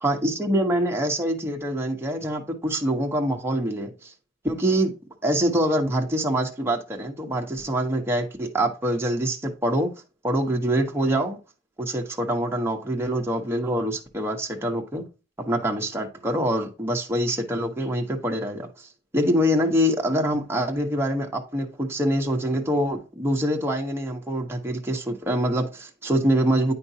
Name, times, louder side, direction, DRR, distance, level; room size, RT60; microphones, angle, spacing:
voice 1, 0.0-4.1 4.4-4.9 5.2-9.9 10.2-11.4 11.8-15.0 15.4-18.7 19.1-26.7, equal, 15° right, 1.0 m, -25 dB
9.0 x 5.2 x 2.8 m
head